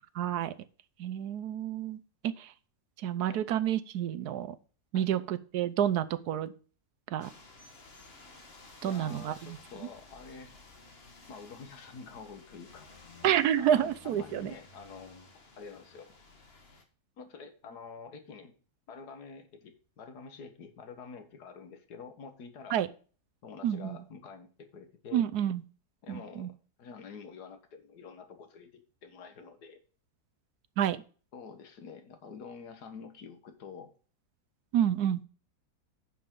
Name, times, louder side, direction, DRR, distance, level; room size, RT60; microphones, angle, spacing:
voice 1, 0.2-0.5 1.0-2.5 3.0-4.5 4.9-6.5 7.1-7.3 8.8-9.6 13.2-14.5 22.7-22.9 23.6-23.9 25.1-25.6 26.1-26.5 30.8-31.0 34.7-35.2, right 10 dB, 75° right, 13 dB, 1.2 m, -29 dB
sound 1, 7.2-16.8, left 3 dB, 40° left, 1.6 m, -54 dB
voice 2, 8.8-10.6 11.3-13.1 13.6-16.1 17.2-18.5 18.9-22.8 23.4-25.3 26.0-26.5 26.8-29.8 31.3-33.9, left 5 dB, 75° left, 8 dB, 1.8 m, -48 dB
10.0 x 7.1 x 3.8 m, 0.39 s
omnidirectional pair, 1.7 m